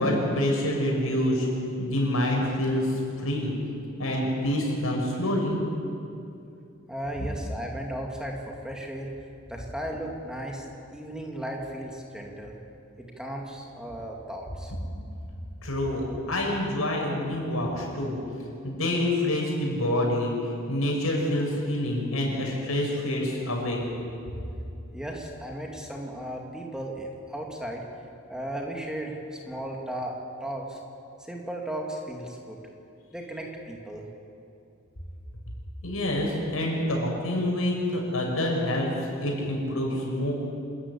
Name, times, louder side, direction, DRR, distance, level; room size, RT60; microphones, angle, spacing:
voice 1, 0.0-1.5 1.8-3.5 4.0-5.6 15.6-18.2 18.6-23.8 35.8-40.3, left 1 dB, 85° left, -1 dB, 6.3 m, -27 dB
voice 2, 6.9-9.1 9.5-12.6 13.0-14.7 24.9-27.8 28.3-30.8 31.2-32.6 33.1-34.1, right 1 dB, 5° right, 0 dB, 2.3 m, -36 dB
26.5 x 14.0 x 9.9 m, 2.6 s
head